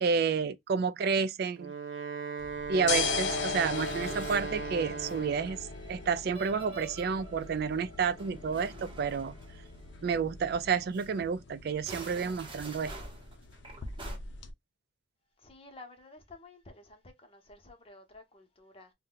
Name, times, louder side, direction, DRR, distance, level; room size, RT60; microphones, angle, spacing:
voice 1, 0.0-1.7 2.7-9.4 10.0-12.9, right 5 dB, 55° right, 0.3 m, -30 dB
Wind instrument woodwind instrument, 1.4-5.7, right 4 dB, 85° right, 0.7 m, -38 dB
sound 1, 2.4-14.5, left 5 dB, 70° left, 0.6 m, -39 dB
Musical instrument, 3.3-10.2 10.5-10.7 10.9-11.1 11.7-14.2, right 3 dB, 25° right, 0.8 m, -48 dB
voice 2, 15.4-18.9, left 2 dB, 30° left, 0.8 m, -52 dB
2.7 x 2.1 x 3.8 m
head